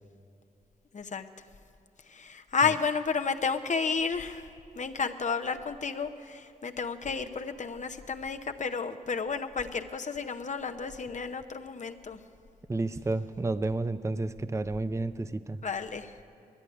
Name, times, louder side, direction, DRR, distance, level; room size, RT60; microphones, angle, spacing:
voice 1, 0.9-1.2 2.1-4.5 4.8-12.2 15.6-16.1, left 5 dB, 50° left, 7 dB, 0.8 m, -32 dB
voice 2, 12.7-15.6, right 2 dB, 20° right, 13 dB, 0.5 m, -31 dB
11.0 x 9.8 x 9.8 m, 2.6 s
cardioid pair, 50°, 16 cm